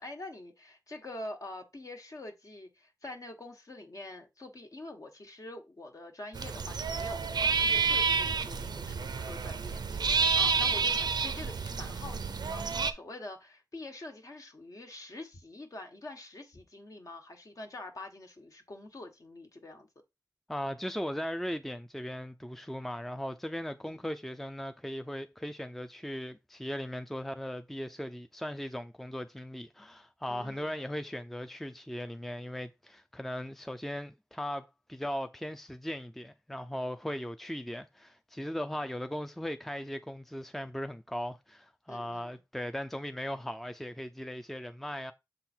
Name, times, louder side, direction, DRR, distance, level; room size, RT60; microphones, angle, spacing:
voice 1, 0.0-19.9 23.8-24.0 30.3-30.8 41.9-42.4, left 2 dB, 55° left, 1.5 m, -46 dB
sound 1, 6.3-12.9, right 5 dB, 90° right, 0.6 m, -29 dB
voice 2, 20.5-45.1, equal, 5° left, 0.4 m, -38 dB
7.0 x 3.8 x 4.4 m
wide cardioid pair, 75°, 7 cm